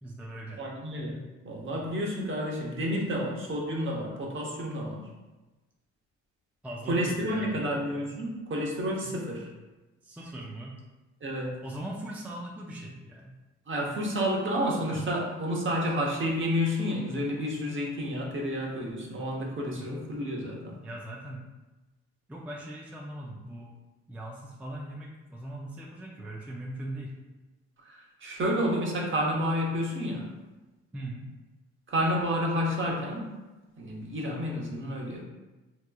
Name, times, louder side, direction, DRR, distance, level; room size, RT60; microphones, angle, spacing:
voice 1, 0.0-0.6 6.6-7.7 9.0-9.2 10.0-10.8 11.6-13.4 19.7-19.9 20.8-21.5 22.3-23.7 24.1-27.2 30.9-31.3, right 1 dB, 5° right, -2 dB, 0.3 m, -40 dB
voice 2, 0.6-1.2 1.4-5.1 6.9-9.5 11.2-11.5 13.7-20.8 27.8-30.3 31.9-33.3 33.8-35.2, equal, 40° right, -1 dB, 0.8 m, -30 dB
3.5 x 2.9 x 2.2 m, 1.1 s
cardioid pair, 90°, 30 cm